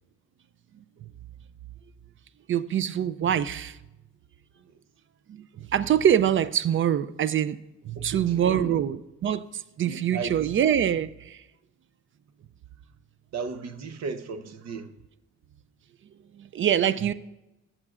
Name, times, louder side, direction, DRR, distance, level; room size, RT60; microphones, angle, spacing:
voice 1, 2.5-3.8 5.3-5.4 5.7-7.6 7.8-11.4 16.4-17.1, right 9 dB, 45° right, 0.4 m, -24 dB
voice 2, 8.0-8.8 9.9-10.5 13.3-14.9, right 5 dB, 60° right, 0.8 m, -35 dB
14.0 x 7.4 x 2.4 m
cardioid pair, 90°, 30 cm